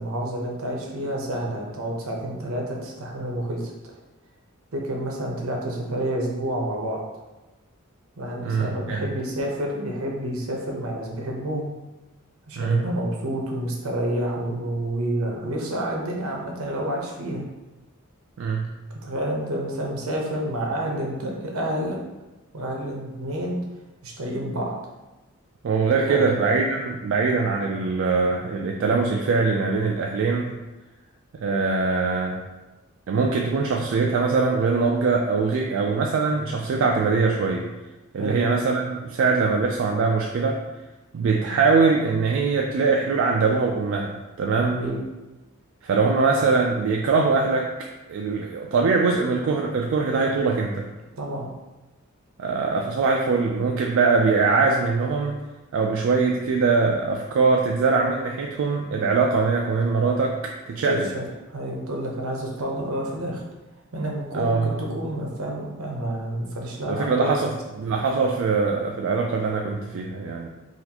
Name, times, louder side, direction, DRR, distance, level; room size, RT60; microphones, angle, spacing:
voice 1, 0.0-3.7 4.7-7.0 8.2-11.7 12.5-17.5 19.0-22.0 22.5-23.6 24.0-24.7 26.1-26.3 38.2-38.4 44.6-45.0 51.2-51.5 60.8-63.4 63.9-67.5, right 1 dB, 80° right, 0 dB, 0.8 m, -29 dB
voice 2, 8.4-9.1 12.6-12.9 18.4-18.8 25.6-30.5 31.3-32.4 33.1-37.7 38.1-40.6 41.1-44.8 45.8-50.9 52.4-55.4 55.7-61.1 64.3-64.8 66.9-67.5 67.8-70.5, right 4 dB, 65° right, 0 dB, 0.3 m, -22 dB
3.9 x 2.5 x 2.8 m, 1.1 s
head